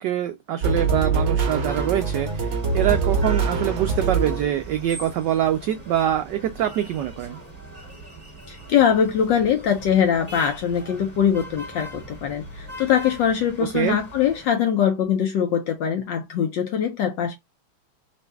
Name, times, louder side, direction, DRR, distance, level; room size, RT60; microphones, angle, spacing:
voice 1, 0.0-7.4 13.7-14.0, right 11 dB, 85° right, 0.9 m, -24 dB
sound 1, 0.6-4.8, right 4 dB, 50° right, 0.8 m, -24 dB
sound 2, 1.5-14.5, right 1 dB, 20° right, 1.6 m, -41 dB
voice 2, 8.5-17.4, left 8 dB, 75° left, 1.1 m, -22 dB
4.0 x 2.6 x 3.3 m
omnidirectional pair, 2.4 m